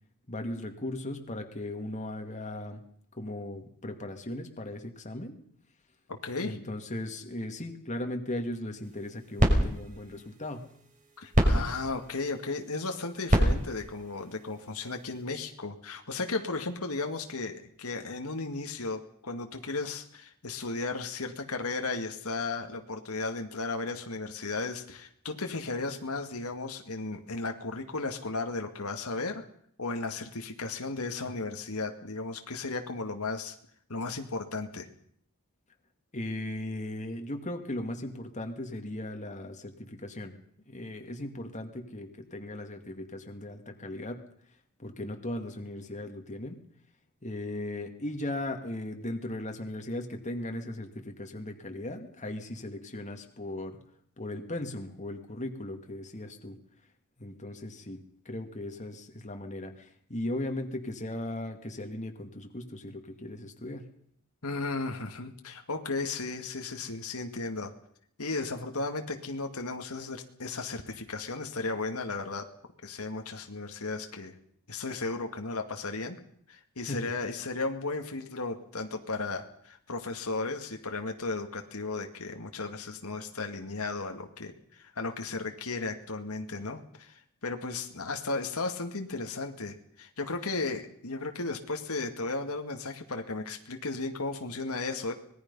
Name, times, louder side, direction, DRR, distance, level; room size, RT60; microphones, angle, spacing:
voice 1, 0.3-2.8 3.1-5.4 6.4-10.6 36.1-40.3 40.7-44.2 44.8-46.6 47.2-53.8 54.2-56.6 57.2-63.8 76.8-77.0, left 1 dB, 35° left, 4 dB, 2.3 m, -37 dB
voice 2, 6.1-6.6 11.2-29.4 29.8-33.5 33.9-34.9 64.4-67.7 68.2-72.5 72.8-74.3 74.7-76.2 76.5-95.1, left 3 dB, 70° left, 4 dB, 2.2 m, -35 dB
sound 1, 8.8-15.2, equal, 35° right, 5.6 m, -29 dB
25.5 x 20.5 x 5.6 m, 0.64 s
head